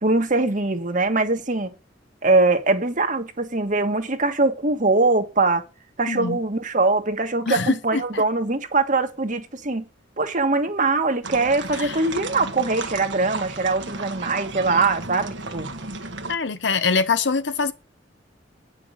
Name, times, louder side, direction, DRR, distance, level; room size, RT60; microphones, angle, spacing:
voice 1, 0.0-1.7 2.2-5.6 6.0-9.8 10.2-15.7, right 3 dB, 45° right, 1.5 m, -22 dB
voice 2, 6.1-6.4 7.5-8.2 11.8-12.0 16.3-17.7, left 4 dB, 70° left, 1.0 m, -24 dB
sound 1, 11.2-16.4, right 3 dB, 75° right, 1.4 m, -34 dB
9.5 x 6.0 x 6.5 m
head